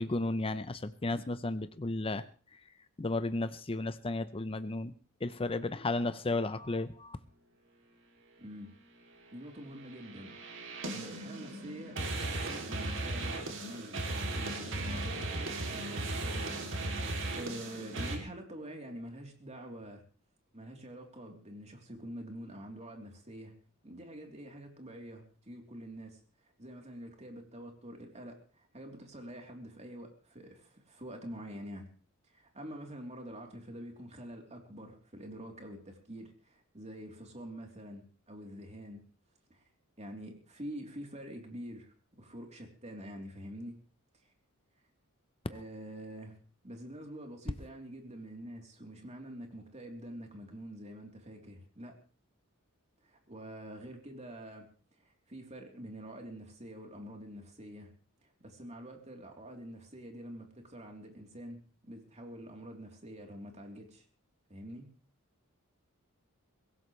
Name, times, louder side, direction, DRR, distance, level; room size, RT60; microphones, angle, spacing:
voice 1, 0.0-2.2 3.0-4.9 5.2-7.2, left 2 dB, 25° left, 12 dB, 0.7 m, -33 dB
voice 2, 8.4-8.7 9.3-10.4 10.9-15.4 15.7-16.5 17.3-20.0 20.5-23.5 23.8-26.2 26.6-31.9 32.3-39.0 39.5-39.6 40.0-43.8 45.5-46.4 46.6-52.0 53.0-54.7 55.0-57.9 58.2-64.0 64.5-64.9, equal, 30° right, 2 dB, 3.4 m, -46 dB
sound 1, 9.8-18.2, right 2 dB, 60° right, 2.9 m, -37 dB
23.0 x 17.0 x 3.2 m, 0.39 s
head